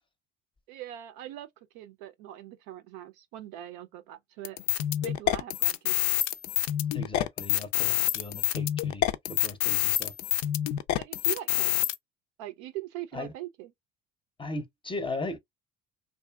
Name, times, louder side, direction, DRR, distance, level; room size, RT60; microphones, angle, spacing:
voice 1, 0.7-1.5 1.7-4.6 5.0-6.1 11.0-11.7 12.4-13.7, right 13 dB, 75° right, 0.6 m, -41 dB
sound 1, 4.4-11.9, left 13 dB, 65° left, 0.4 m, -27 dB
voice 2, 6.9-9.0 9.3-10.1 13.1-13.3 14.4-15.4, left 2 dB, 15° left, 0.6 m, -37 dB
2.6 x 2.4 x 2.3 m
supercardioid pair, 70°, 31 cm